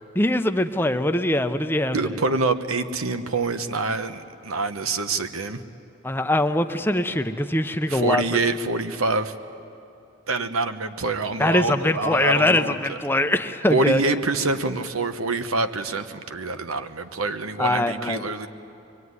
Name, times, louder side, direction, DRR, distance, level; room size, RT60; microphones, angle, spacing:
voice 1, 0.2-2.0 6.0-8.2 11.4-14.0 17.6-18.2, left 1 dB, 10° left, 8 dB, 0.7 m, -22 dB
voice 2, 1.9-5.6 7.9-9.3 10.3-13.0 13.7-18.5, right 3 dB, 90° right, 9 dB, 1.2 m, -26 dB
24.0 x 23.5 x 9.7 m, 2.7 s
head